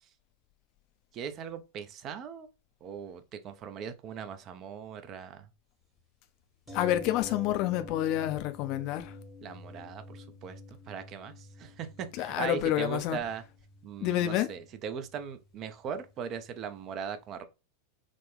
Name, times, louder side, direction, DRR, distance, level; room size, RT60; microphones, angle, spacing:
voice 1, 1.1-2.5 2.8-5.5 9.4-13.4 13.8-17.4, right 7 dB, 35° right, 0.5 m, -39 dB
voice 2, 6.7-9.2 12.1-13.2 14.0-14.5, left 13 dB, 40° left, 0.4 m, -28 dB
sound 1, 6.7-16.5 16.8-16.9, left 2 dB, 15° right, 1.0 m, -48 dB
3.7 x 2.1 x 3.5 m
figure-of-eight pair, 90°, 0 cm